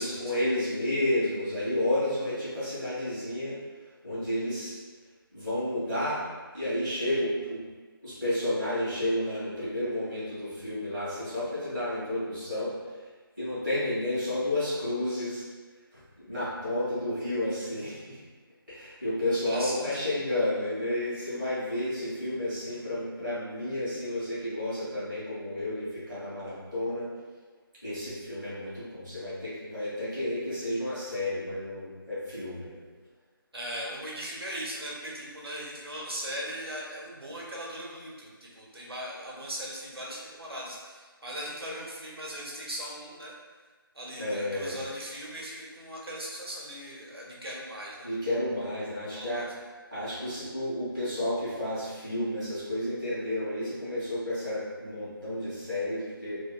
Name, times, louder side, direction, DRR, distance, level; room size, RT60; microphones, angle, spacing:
voice 1, 0.0-3.6 4.0-4.7 5.3-6.2 6.5-7.6 8.0-12.7 13.4-15.4 15.9-18.2 18.7-27.1 27.8-32.8 44.2-44.8 48.0-49.5 49.9-56.4, left 1 dB, ahead, -42 dB, 0.4 m, -31 dB
voice 2, 19.5-19.9 33.5-43.3 43.9-48.1 49.1-49.4, equal, 85° right, -4 dB, 0.9 m, -38 dB
2.8 x 2.5 x 2.2 m, 1.4 s
figure-of-eight pair, 170°, 12 cm